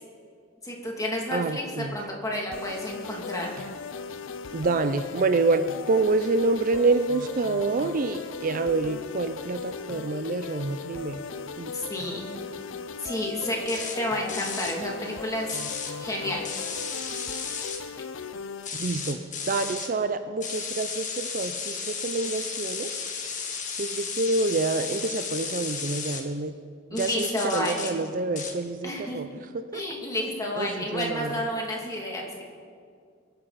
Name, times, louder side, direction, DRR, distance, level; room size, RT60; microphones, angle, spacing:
voice 1, 0.6-3.5 11.7-12.3 13.0-15.6 16.0-16.5 26.9-28.0 28.8-29.2 29.7-32.4, left 1 dB, 20° left, -2 dB, 2.5 m, -31 dB
voice 2, 1.3-1.9 4.5-11.2 11.6-11.7 18.8-19.2 19.5-23.0 23.8-26.5 26.9-29.3 29.5-29.8 30.6-31.4, right 3 dB, 45° right, 10 dB, 0.5 m, -27 dB
sound 1, 2.5-18.7, left 5 dB, 85° left, 0.7 m, -38 dB
sound 2, 13.7-14.0 14.3-14.8 15.5-15.9 16.4-17.8 18.6-19.9 20.4-26.2 27.0-27.9 28.4-28.5, left 6 dB, 40° left, 1.7 m, -34 dB
23.5 x 11.0 x 4.1 m, 2.2 s
head